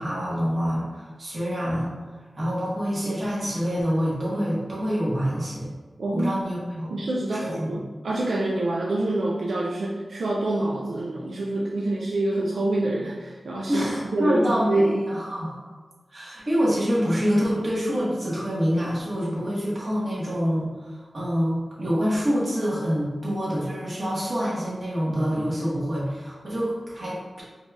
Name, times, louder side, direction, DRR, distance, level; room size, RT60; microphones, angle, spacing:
voice 1, 0.0-1.9 2.4-5.7 6.1-7.0 7.3-7.8 13.7-15.6 16.1-27.4, equal, 50° right, -7 dB, 1.4 m, -26 dB
voice 2, 6.0-6.3 6.9-15.0, right 2 dB, 90° right, -4 dB, 0.4 m, -26 dB
4.3 x 3.3 x 2.4 m, 1.3 s
wide cardioid pair, 85°, 0 cm